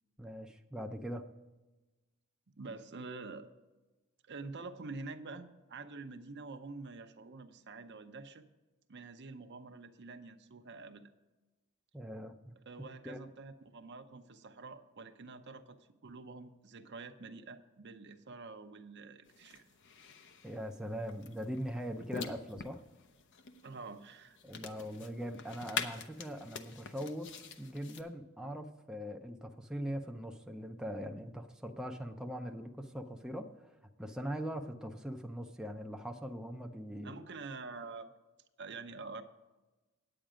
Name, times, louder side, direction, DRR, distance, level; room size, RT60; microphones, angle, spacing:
voice 1, 0.2-1.2 11.9-12.5 13.0-13.2 20.4-22.8 24.4-27.3 27.6-37.2, equal, 5° right, 3 dB, 0.5 m, -41 dB
voice 2, 2.6-3.5 4.3-8.5 8.9-11.0 12.7-19.7 23.6-24.4 37.0-38.1 38.6-39.2, right 3 dB, 55° right, 8 dB, 0.7 m, -47 dB
sound 1, 19.3-28.0, left 6 dB, 55° left, 0.8 m, -46 dB
9.0 x 8.8 x 5.0 m, 1.1 s
head